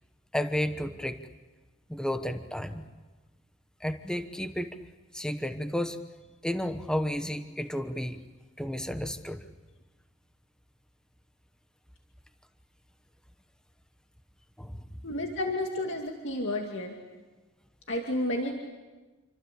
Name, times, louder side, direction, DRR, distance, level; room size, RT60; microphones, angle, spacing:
voice 1, 0.3-1.2 1.9-2.9 3.8-4.7 5.1-6.0 6.4-8.2 8.6-9.4 14.6-14.8, equal, 5° left, 8 dB, 1.1 m, -32 dB
voice 2, 15.0-17.0 17.9-18.5, left 1 dB, 65° left, 1 dB, 2.5 m, -31 dB
28.0 x 25.0 x 8.5 m, 1.2 s
head